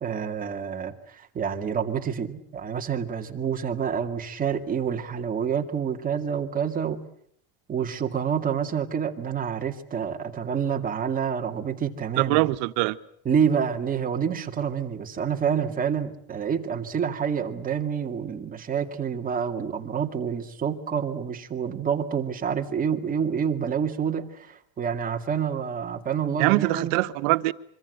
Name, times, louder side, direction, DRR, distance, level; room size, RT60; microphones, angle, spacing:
voice 1, 0.0-7.0 7.7-12.5 13.3-27.0, right 7 dB, 20° right, 2.1 m, -28 dB
voice 2, 12.2-13.0 26.4-27.5, right 21 dB, 80° right, 1.3 m, -23 dB
25.5 x 25.0 x 8.0 m
cardioid pair, 165°, 39 cm